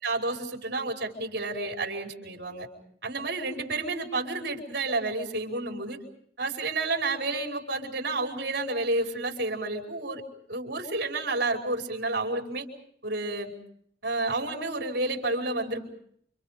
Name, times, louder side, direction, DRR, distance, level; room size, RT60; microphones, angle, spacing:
voice 1, 0.0-2.7 3.0-6.0 6.4-10.2 10.5-12.7 13.0-13.5 14.0-15.9, right 2 dB, 60° right, 2 dB, 5.1 m, -30 dB
29.5 x 26.5 x 5.2 m, 0.67 s
head